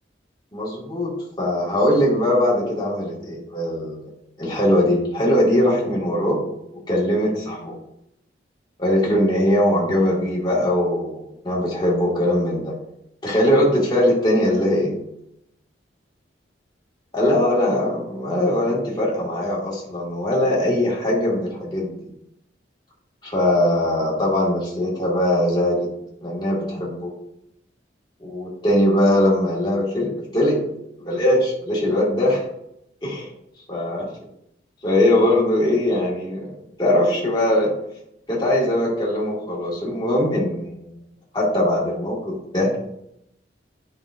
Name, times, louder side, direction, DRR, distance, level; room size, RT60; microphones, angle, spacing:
voice 1, 0.5-4.1 4.4-6.4 6.7-7.7 8.8-12.7 13.2-15.0 17.1-22.1 23.2-25.9 26.2-27.1 28.2-30.6 31.0-32.4 33.0-33.3 33.7-34.1 34.8-36.5 36.8-37.7 38.3-41.0 41.3-42.7, left 1 dB, 25° left, -4 dB, 2.0 m, -21 dB
10.0 x 5.3 x 2.6 m, 0.79 s
head